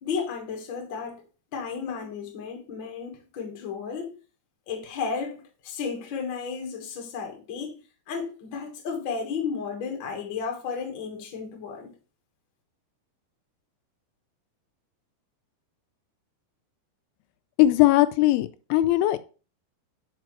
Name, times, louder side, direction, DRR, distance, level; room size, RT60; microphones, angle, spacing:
voice 1, 0.0-1.2 1.5-4.2 4.7-7.8 8.1-11.9, left 5 dB, 50° left, 1.4 m, -33 dB
voice 2, 17.6-19.2, left 15 dB, 85° left, 2.5 m, -20 dB
5.9 x 5.3 x 4.6 m
omnidirectional pair, 4.5 m